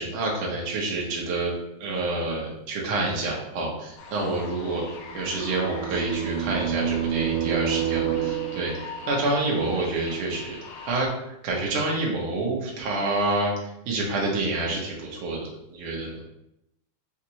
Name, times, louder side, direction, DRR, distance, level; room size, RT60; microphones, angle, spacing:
voice 1, 0.0-1.5 1.8-4.8 5.1-10.6 10.8-11.1 11.4-13.5 13.9-16.2, right 2 dB, 65° right, -2 dB, 1.9 m, -28 dB
sound 1, 4.0-11.1, left 4 dB, 80° left, 2.1 m, -42 dB
sound 2, 5.0-8.9, right 10 dB, 85° right, 2.1 m, -28 dB
6.0 x 2.5 x 2.8 m, 0.83 s
omnidirectional pair, 3.5 m